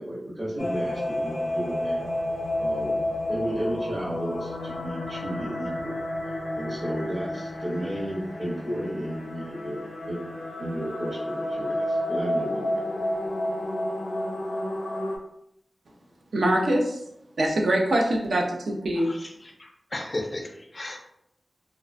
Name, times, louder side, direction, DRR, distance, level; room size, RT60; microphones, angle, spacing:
voice 1, 0.0-2.0 2.6-3.0 3.3-6.0 6.6-10.2 10.6-13.1, equal, 45° right, -7 dB, 0.7 m, -33 dB
sound 1, 0.6-15.2, left 1 dB, 85° left, 0.6 m, -31 dB
voice 2, 16.3-17.0 17.4-19.1, right 1 dB, 85° right, 0 dB, 0.4 m, -23 dB
voice 3, 19.0-21.0, left 1 dB, 40° left, 1 dB, 0.3 m, -35 dB
2.4 x 2.1 x 2.4 m, 0.77 s
wide cardioid pair, 65°, 0 cm